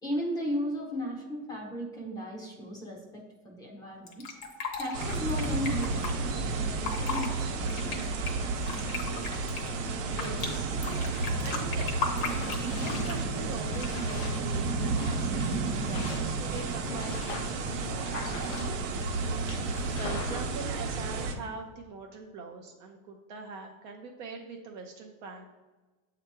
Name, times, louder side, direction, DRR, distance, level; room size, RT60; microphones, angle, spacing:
voice 1, 0.0-4.3 4.8-8.1, equal, 10° left, -2 dB, 0.7 m, -35 dB
Fill (with liquid), 4.1-6.1 6.7-7.3 7.6-10.5 10.8-13.2 13.7-14.1, left 5 dB, 35° left, 0.9 m, -36 dB
sound 1, 4.9-21.3, right 3 dB, 55° right, 1.0 m, -31 dB
voice 2, 10.0-10.8 11.4-11.9 12.6-25.4, right 4 dB, 35° right, 2 dB, 0.5 m, -43 dB
sound 2, 10.5-20.5, left 5 dB, 55° left, 0.8 m, -43 dB
7.5 x 2.9 x 4.6 m, 1.3 s
supercardioid pair, 170°, 41 cm